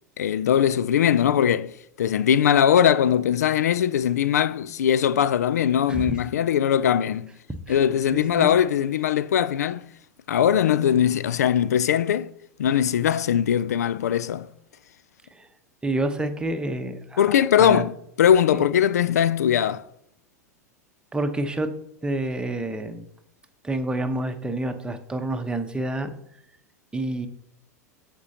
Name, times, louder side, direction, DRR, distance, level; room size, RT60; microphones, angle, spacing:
voice 1, 0.2-1.7 2.0-7.3 7.7-9.9 10.3-12.3 12.6-14.5 17.2-17.9 18.2-19.9, left 9 dB, 70° left, 0.4 m, -20 dB
voice 2, 8.1-8.6 15.3-15.5 15.8-17.9 18.5-18.6 21.1-21.7 22.0-23.1 23.6-26.1 26.9-27.3, right 2 dB, 10° right, 1.0 m, -28 dB
14.5 x 5.2 x 2.9 m
figure-of-eight pair, 90°, 9 cm